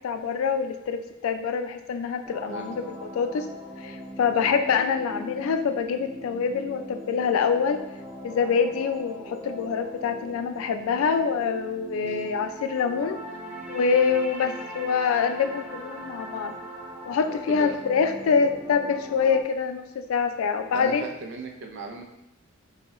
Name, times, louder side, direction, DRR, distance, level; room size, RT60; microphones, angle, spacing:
voice 1, 0.0-3.5 3.8-7.8 8.2-13.2 13.7-16.5 17.1-21.0, left 6 dB, 75° left, 8 dB, 0.3 m, -25 dB
sound 1, 2.2-19.4, right 1 dB, 5° right, 0.5 m, -40 dB
voice 2, 20.7-22.0, right 3 dB, 55° right, 3 dB, 0.5 m, -37 dB
3.7 x 2.8 x 3.0 m, 0.87 s
head